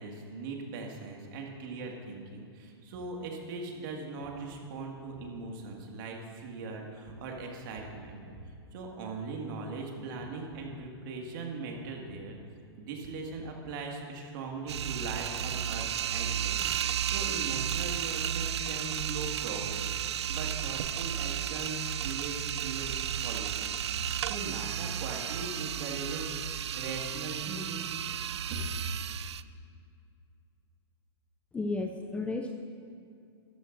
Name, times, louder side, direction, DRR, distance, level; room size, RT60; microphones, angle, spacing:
voice 1, 0.0-8.3 8.7-12.4 12.8-16.6 17.1-23.8 24.3-27.9 28.5-28.6, right 3 dB, 50° right, 0 dB, 2.0 m, -40 dB
sound 1, 14.7-29.4, right 9 dB, 85° right, 0.4 m, -33 dB
voice 2, 31.5-32.5, left 3 dB, 10° left, 5 dB, 0.4 m, -33 dB
13.5 x 12.5 x 2.6 m, 2.4 s
hypercardioid pair, 135°, 14 cm